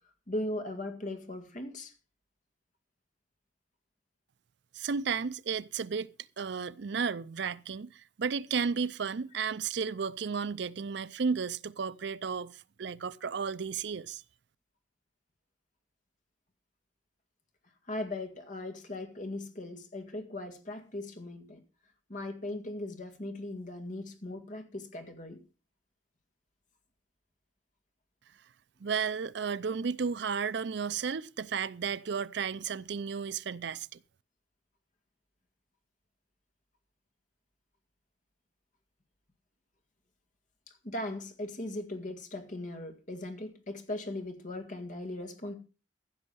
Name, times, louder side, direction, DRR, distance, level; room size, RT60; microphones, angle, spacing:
voice 1, 0.3-1.9 17.9-21.6 22.1-25.4 40.7-45.6, left 1 dB, 40° left, 1.9 m, -38 dB
voice 2, 4.7-6.1 6.4-14.2 28.8-34.0, right 6 dB, 60° right, 0.5 m, -33 dB
15.5 x 6.4 x 5.5 m
head